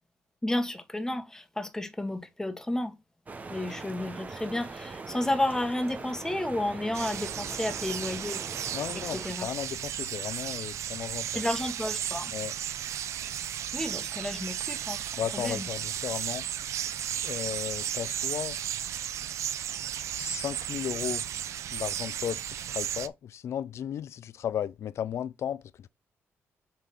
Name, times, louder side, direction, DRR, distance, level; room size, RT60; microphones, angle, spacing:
voice 1, 0.4-3.0 3.5-8.7 8.9-9.5 11.3-12.3 13.7-15.7, left 1 dB, 10° left, 1.5 m, -32 dB
sound 1, 3.3-9.3, right 4 dB, 30° right, 1.0 m, -41 dB
sound 2, 6.9-23.1, right 10 dB, 75° right, 0.6 m, -34 dB
voice 2, 8.7-11.4 12.3-12.5 15.2-16.4 17.2-18.6 19.8-19.9 20.2-21.3 21.7-25.9, left 9 dB, 65° left, 0.5 m, -35 dB
6.7 x 3.8 x 4.6 m
cardioid pair, 100°, 5 cm